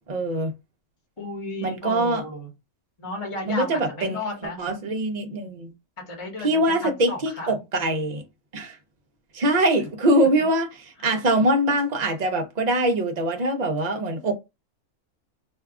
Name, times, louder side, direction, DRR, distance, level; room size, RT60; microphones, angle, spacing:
voice 1, 0.1-0.5 1.6-2.2 3.5-4.2 4.6-5.7 6.4-8.2 8.5-8.8 9.3-10.7 11.0-14.3, right 1 dB, 55° right, 0.4 m, -23 dB
voice 2, 1.2-2.5 3.0-4.6 6.0-7.5 10.4-10.5, left 2 dB, 25° left, 0.9 m, -33 dB
2.7 x 2.3 x 3.5 m
omnidirectional pair, 1.6 m